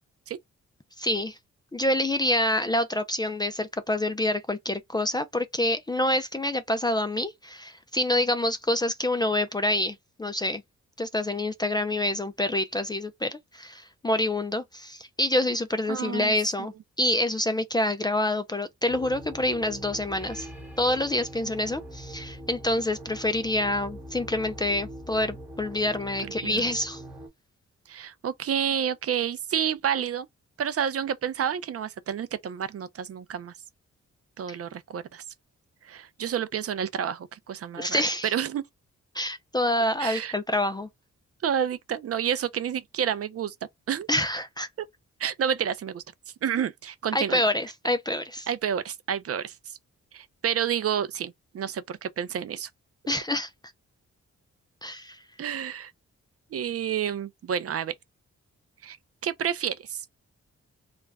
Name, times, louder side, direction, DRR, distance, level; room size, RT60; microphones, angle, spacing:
voice 1, 1.0-1.4 1.7-10.6 11.0-20.5 20.8-27.0 34.5-34.6 37.7-38.3 39.1-40.9 44.1-44.7 47.1-48.5 53.1-53.5 54.8-55.2, left 1 dB, 15° left, 0.3 m, -27 dB
voice 2, 15.9-16.3 26.2-26.7 27.9-30.3 30.6-33.5 34.4-35.2 35.8-38.0 38.3-38.6 40.0-40.3 41.4-43.5 43.9-44.1 45.2-46.0 46.4-47.4 48.5-49.5 50.1-52.7 55.4-55.9 56.5-57.9 58.8-59.0 59.2-60.0, right 8 dB, 55° right, 0.4 m, -29 dB
sound 1, 18.9-27.3, right 1 dB, 5° right, 0.9 m, -42 dB
2.3 x 2.1 x 3.3 m
wide cardioid pair, 120°, 29 cm